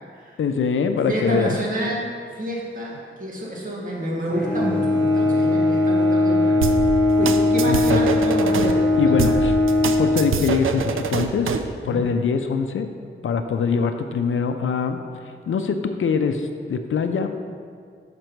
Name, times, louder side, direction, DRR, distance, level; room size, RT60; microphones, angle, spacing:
voice 1, 0.4-1.6 7.2-8.0 9.0-9.5 10.0-11.5 11.8-12.9 13.2-17.3, left 6 dB, 75° left, 7 dB, 0.5 m, -23 dB
voice 2, 1.1-9.4 11.8-12.0, equal, 40° right, -4 dB, 1.6 m, -28 dB
Bowed string instrument, 4.3-11.0, left 2 dB, 10° left, 1.8 m, -20 dB
sound 1, 6.6-8.7 9.2-11.7, right 6 dB, 75° right, 0.5 m, -25 dB
6.5 x 5.9 x 4.5 m, 2.1 s
wide cardioid pair, 125°, 21 cm